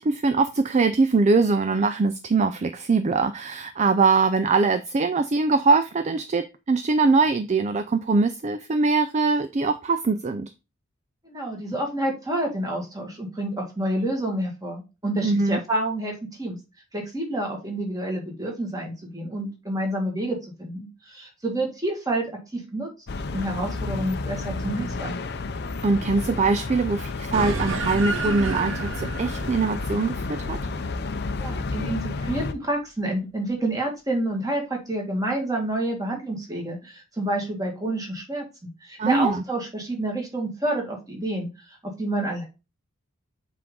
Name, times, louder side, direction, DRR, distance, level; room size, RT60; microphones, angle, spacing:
voice 1, 0.0-10.5 15.2-15.6 25.8-30.6 39.0-39.4, right 4 dB, 35° right, 0.4 m, -22 dB
voice 2, 11.2-16.6 16.9-22.9 23.3-25.2 31.4-42.4, right 1 dB, 15° right, 1.9 m, -29 dB
sound 1, 23.1-32.5, left 3 dB, 55° left, 0.6 m, -31 dB
sound 2, 27.3-32.1, right 3 dB, 65° right, 1.0 m, -32 dB
7.5 x 3.6 x 3.8 m
head